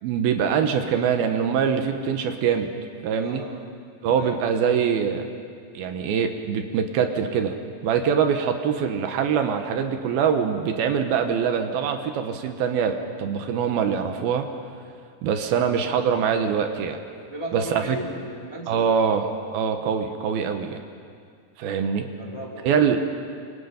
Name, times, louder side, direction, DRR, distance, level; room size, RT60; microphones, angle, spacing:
voice 1, 0.0-2.7 3.0-3.4 4.0-5.2 5.7-7.6 7.8-14.5 15.2-17.0 17.5-18.0 18.7-20.8 21.6-22.1 22.6-23.1, right 7 dB, 70° right, 6 dB, 2.7 m, -23 dB
voice 2, 3.2-3.6 4.1-4.4 17.3-18.9 22.2-22.7, right 1 dB, 20° left, -2 dB, 0.6 m, -35 dB
27.5 x 23.5 x 5.2 m, 2.2 s
omnidirectional pair, 4.9 m